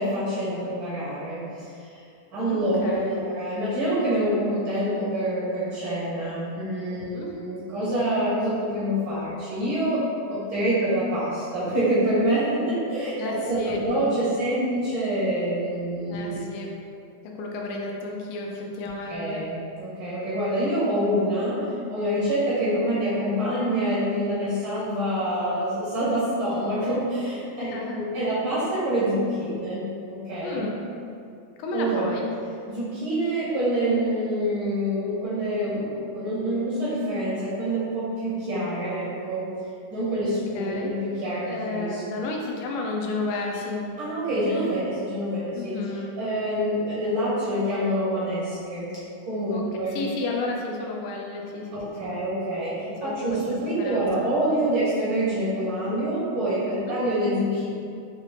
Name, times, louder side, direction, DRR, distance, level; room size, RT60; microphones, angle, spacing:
voice 1, 0.0-2.0 2.3-10.0 10.3-16.4 19.1-30.7 31.7-32.2 32.7-39.5 39.9-42.3 44.0-45.8 46.2-48.9 49.3-50.0 51.7-57.7, right 1 dB, 70° right, -9 dB, 1.2 m, -26 dB
voice 2, 2.5-3.3 6.9-7.3 13.1-14.0 16.1-16.7 17.2-19.4 27.6-28.0 30.4-30.7 31.6-32.2 40.1-40.2 40.6-40.9 41.5-43.9 45.5-46.1 49.5-49.6 49.9-52.1 53.0-54.1 56.7-57.0, left 3 dB, 85° left, 0 dB, 2.1 m, -32 dB
6.0 x 2.4 x 3.3 m, 2.5 s
omnidirectional pair, 3.6 m